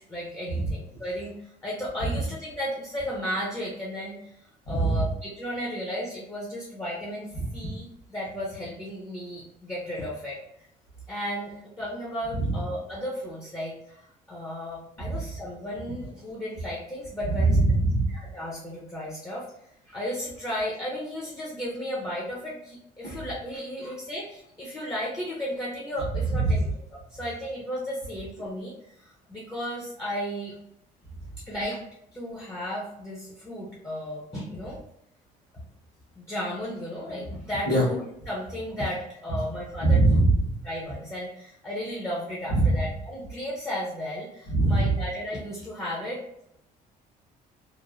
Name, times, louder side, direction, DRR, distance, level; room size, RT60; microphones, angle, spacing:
voice 1, 0.0-10.4 11.1-17.6 18.1-19.5 19.9-30.5 31.5-31.8 32.1-34.8 36.2-38.0 38.3-40.0 40.6-46.2, equal, 15° left, -5 dB, 0.6 m, -34 dB
voice 2, 4.7-5.0 7.3-7.4 12.3-12.6 15.0-15.2 17.4-18.1 23.0-23.2 23.8-23.9 26.3-26.6 37.6-37.8 39.3-39.4 39.8-40.6 42.5-42.8 44.5-44.9, right 2 dB, 65° left, -9 dB, 1.2 m, -22 dB
3.0 x 2.1 x 2.4 m, 0.77 s
cardioid pair, 110°, 17 cm